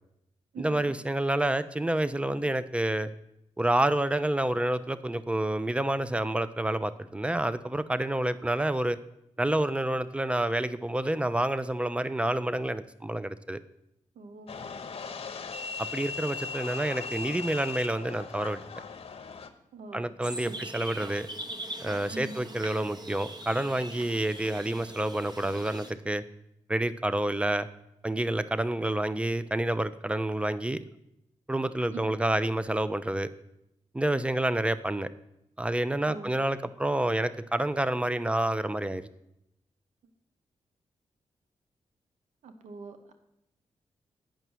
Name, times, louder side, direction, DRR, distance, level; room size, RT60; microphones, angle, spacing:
voice 1, 0.6-3.1 3.6-9.0 9.4-13.6 15.8-18.6 19.9-21.3 21.8-26.2 26.7-27.7 28.0-30.8 31.5-33.3 33.9-35.1 35.6-39.0, right 1 dB, 10° right, 14 dB, 0.6 m, -28 dB
voice 2, 14.2-14.5 19.7-20.1 20.5-20.6 22.1-22.4 31.9-32.1 36.1-36.3 42.4-43.1, right 3 dB, 85° right, 8 dB, 0.9 m, -42 dB
sound 1, 14.5-19.5, left 4 dB, 55° left, 0.9 m, -38 dB
sound 2, 20.2-25.9, right 1 dB, 35° right, 1.2 m, -42 dB
9.1 x 5.5 x 6.2 m, 0.82 s
cardioid pair, 50°, 12 cm